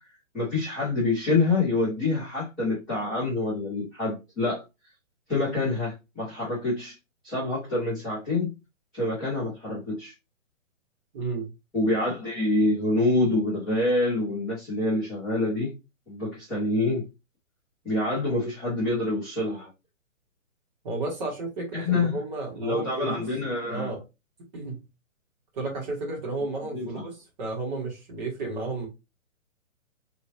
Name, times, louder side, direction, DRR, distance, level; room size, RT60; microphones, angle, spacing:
voice 1, 0.3-4.6 5.3-6.9 7.2-8.5 8.9-10.1 11.7-15.7 16.1-17.0 17.8-19.7 21.7-22.2 22.6-23.9 26.7-27.0, left 2 dB, ahead, 0.4 m, -26 dB
voice 2, 11.1-11.5 20.8-23.2 23.7-24.0 24.5-24.8 25.5-28.9, right 3 dB, 30° right, 1.7 m, -32 dB
3.0 x 2.9 x 2.8 m
hypercardioid pair, 155°, 40 cm